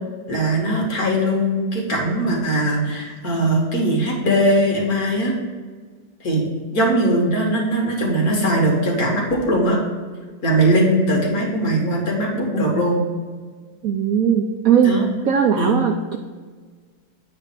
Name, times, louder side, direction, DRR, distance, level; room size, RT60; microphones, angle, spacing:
voice 1, 0.3-5.3 6.2-6.5 6.7-9.8 10.4-13.0 14.8-15.1 15.6-15.8, right 1 dB, 45° left, -2 dB, 2.1 m, -20 dB
voice 2, 13.8-14.9 15.3-16.2, right 8 dB, 90° right, 3 dB, 0.7 m, -18 dB
9.0 x 3.4 x 6.8 m, 1.5 s
omnidirectional pair, 2.2 m